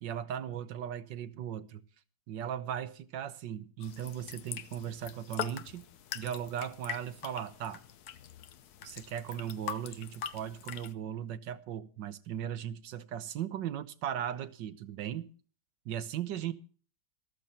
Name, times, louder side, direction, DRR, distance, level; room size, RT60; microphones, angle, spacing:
voice 1, 0.0-1.8 2.3-5.9 6.1-7.8 8.8-15.3 15.8-16.5, right 10 dB, 75° right, 1.5 m, -37 dB
sound 1, 3.8-10.9, left 9 dB, 60° left, 1.2 m, -43 dB
13.5 x 13.5 x 4.1 m
omnidirectional pair, 2.0 m